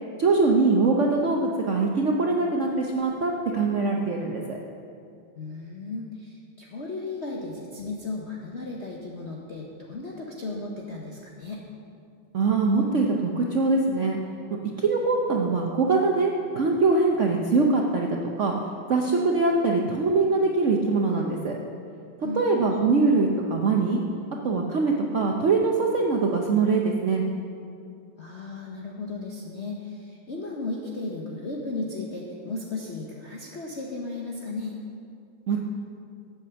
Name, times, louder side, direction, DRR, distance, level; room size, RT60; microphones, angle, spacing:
voice 1, 0.2-4.6 12.3-14.2 14.6-18.5 18.9-21.5 22.4-24.0 24.4-27.2 35.5-35.6, right 3 dB, 75° right, 0 dB, 0.6 m, -23 dB
voice 2, 5.4-11.6 22.2-22.5 28.2-34.8, left 3 dB, 50° left, -2 dB, 0.8 m, -35 dB
8.4 x 7.8 x 6.9 m, 2.4 s
omnidirectional pair, 2.2 m